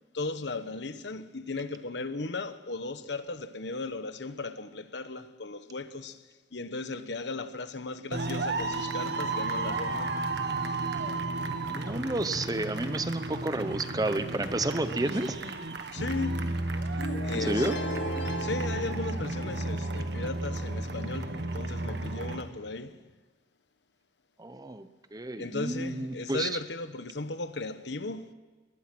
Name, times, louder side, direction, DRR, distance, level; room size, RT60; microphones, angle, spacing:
voice 1, 0.1-6.2 6.5-10.2 15.9-16.4 17.2-17.7 18.4-23.0 25.4-28.3, left 3 dB, 65° left, 1.1 m, -36 dB
sound 1, 8.1-22.4, right 2 dB, 60° right, 1.7 m, -33 dB
voice 2, 11.7-15.4 17.3-17.8 24.4-26.5, right 2 dB, 20° right, 0.9 m, -31 dB
sound 2, 17.0-19.8, left 1 dB, 85° left, 2.2 m, -36 dB
22.5 x 19.5 x 6.1 m
head